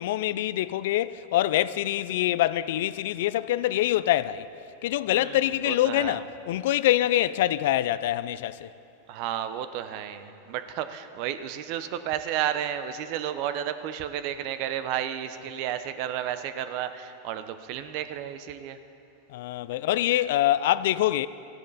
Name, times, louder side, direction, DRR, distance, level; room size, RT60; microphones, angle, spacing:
voice 1, 0.0-4.5 4.8-8.7 19.3-21.3, left 14 dB, 70° left, 0.3 m, -25 dB
voice 2, 5.1-6.2 9.1-18.8, right 10 dB, 55° right, 0.7 m, -32 dB
15.5 x 10.5 x 4.1 m
hypercardioid pair, 105°, 0 cm